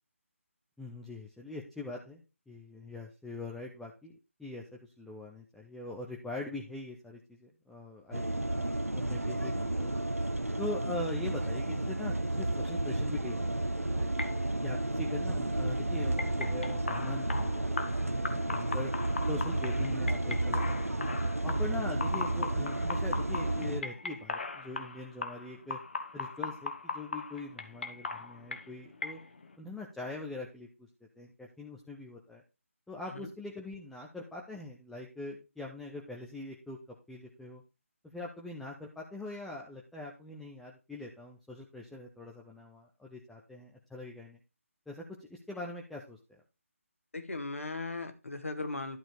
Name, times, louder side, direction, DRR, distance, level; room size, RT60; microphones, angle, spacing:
voice 1, 0.8-4.1 4.4-4.6 5.0-9.9 10.6-14.1 14.6-18.9 19.3-21.0 21.4-25.8 26.1-29.2 29.6-30.9 31.2-32.4 32.9-36.8 37.1-37.6 38.1-44.4 44.9-46.2, left 2 dB, ahead, -2 dB, 0.6 m, -42 dB
sound 1, 8.1-23.8, right 1 dB, 85° right, 0.9 m, -32 dB
sound 2, 14.1-29.6, left 3 dB, 50° left, 1.3 m, -40 dB
voice 2, 47.1-49.0, left 3 dB, 70° left, 8 dB, 1.8 m, -37 dB
11.5 x 4.4 x 4.9 m, 0.28 s
figure-of-eight pair, 150°, 8 cm